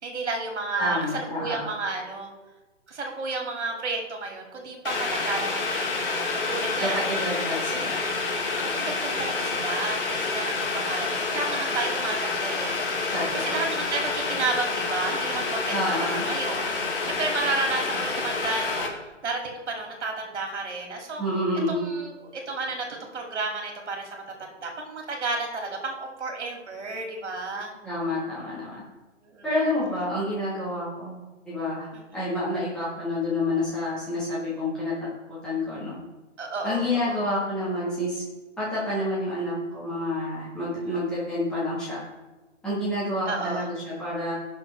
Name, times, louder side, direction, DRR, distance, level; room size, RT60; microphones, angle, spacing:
voice 1, 0.0-2.3 2.9-7.2 8.6-16.7 17.0-18.9 19.2-21.2 21.7-27.8 29.2-29.5 31.9-32.3 36.4-37.2 40.9-41.0 43.2-43.7, right 3 dB, 65° right, 1 dB, 2.6 m, -32 dB
voice 2, 0.8-1.6 6.8-8.0 13.1-13.6 15.7-16.2 21.2-21.8 27.8-28.8 29.4-31.2 31.4-34.9 35.4-35.9 36.6-38.2 38.6-42.0 42.6-44.3, left 1 dB, ahead, -10 dB, 1.5 m, -28 dB
Boiling, 4.8-18.9, left 3 dB, 45° left, 1.6 m, -28 dB
17.0 x 6.1 x 3.3 m, 1.2 s
hypercardioid pair, 175°, 37 cm